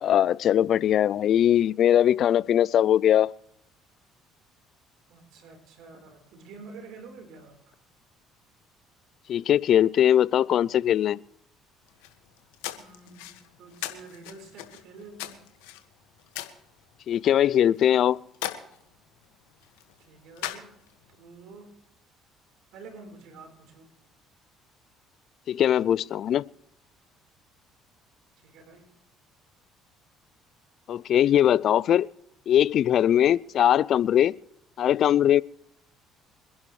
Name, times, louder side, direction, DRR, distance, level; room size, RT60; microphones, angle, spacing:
voice 1, 0.0-3.3 9.3-11.2 17.1-18.2 25.5-26.4 30.9-32.1 32.5-34.3 34.8-35.4, left 10 dB, 60° left, 0.4 m, -21 dB
voice 2, 5.1-7.8 12.7-15.4 20.0-20.8 21.2-21.7 22.7-23.9 28.4-28.9, right 4 dB, 70° right, 4.1 m, -48 dB
sound 1, 11.9-21.1, left 13 dB, 85° left, 1.7 m, -41 dB
26.0 x 11.0 x 3.2 m
hypercardioid pair, 65°, 0 cm